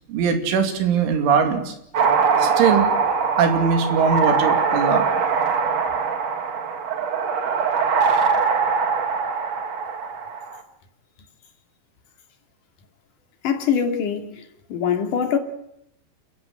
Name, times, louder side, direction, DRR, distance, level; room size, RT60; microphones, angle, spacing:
voice 1, 0.1-1.8 2.4-2.9 3.4-5.1, right 6 dB, 80° right, 5.0 m, -20 dB
sound 1, 1.9-10.6, right 5 dB, 55° right, 2.0 m, -22 dB
voice 2, 13.4-14.4 14.7-15.4, left 7 dB, 50° left, 3.5 m, -23 dB
28.5 x 15.0 x 8.9 m
omnidirectional pair, 5.5 m